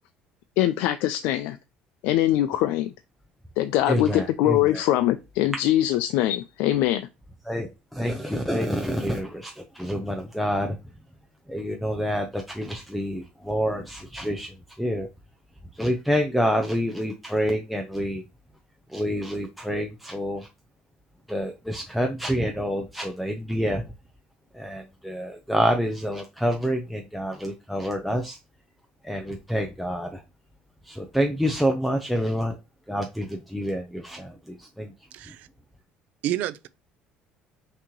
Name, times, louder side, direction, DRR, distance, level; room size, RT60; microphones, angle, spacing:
voice 1, 0.6-1.6 2.0-2.9 3.6-7.0, left 13 dB, 80° left, 0.4 m, -22 dB
voice 2, 3.9-4.8 7.5-10.8 11.5-15.1 15.7-18.2 18.9-20.5 21.3-23.8 24.5-28.4 29.0-30.2 30.9-32.6 32.9-34.9, equal, ahead, 0.5 m, -27 dB
voice 3, 35.1-35.5 36.2-36.7, right 13 dB, 65° right, 0.4 m, -29 dB
5.8 x 2.8 x 3.0 m
cardioid pair, 140°, 3 cm